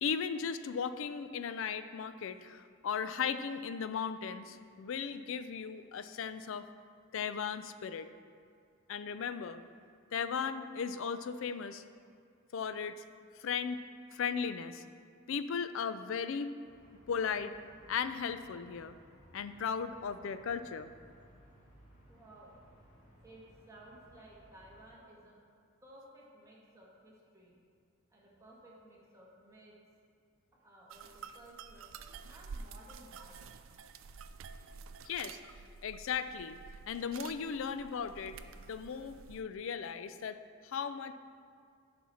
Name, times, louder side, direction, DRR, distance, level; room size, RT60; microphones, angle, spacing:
voice 1, 0.0-6.7 7.1-8.1 8.9-9.6 10.1-11.8 12.5-13.0 13.4-13.8 14.1-14.8 15.3-16.6 17.1-17.5 17.9-19.0 19.3-20.9 35.0-35.4 35.8-36.6 36.9-38.4 38.7-40.4 40.6-41.1, left 6 dB, 70° left, 12 dB, 0.4 m, -36 dB
sound 1, 16.6-24.9, equal, 40° left, 1.9 m, -61 dB
voice 2, 22.1-22.6 23.2-25.4 25.8-27.6 28.1-29.7 30.5-31.9 32.3-33.4, right 1 dB, 15° right, -5 dB, 1.7 m, -56 dB
sound 2, 30.9-39.4, right 5 dB, 65° right, 0.4 m, -50 dB
10.0 x 5.9 x 4.2 m, 2.3 s
head